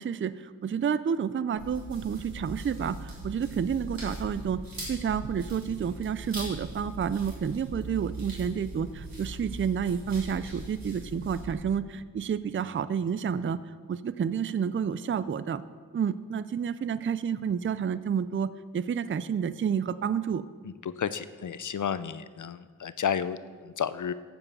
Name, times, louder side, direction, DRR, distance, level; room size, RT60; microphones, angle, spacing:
voice 1, 0.0-4.6 4.9-13.6 13.9-15.6 15.9-20.4, right 7 dB, 35° right, 15 dB, 0.4 m, -30 dB
sound 1, 1.6-11.5, right 1 dB, 80° right, 3.7 m, -40 dB
voice 2, 20.6-24.1, left 8 dB, 60° left, 15 dB, 0.6 m, -32 dB
8.3 x 7.2 x 7.0 m, 1.5 s
cardioid pair, 55°, 34 cm